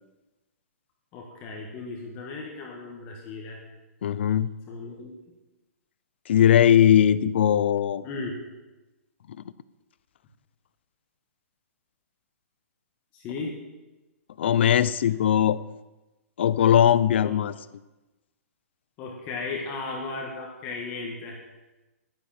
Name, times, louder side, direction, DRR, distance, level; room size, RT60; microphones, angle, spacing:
voice 1, 1.1-3.6 4.7-5.1 8.0-8.4 13.1-13.6 17.2-17.4 19.0-21.4, left 3 dB, 20° left, -1 dB, 1.6 m, -35 dB
voice 2, 4.0-4.5 6.3-8.0 14.4-15.6 16.4-17.5, left 10 dB, 45° left, 17 dB, 0.5 m, -19 dB
11.5 x 10.0 x 7.7 m, 1.1 s
hypercardioid pair, 175°, 8 cm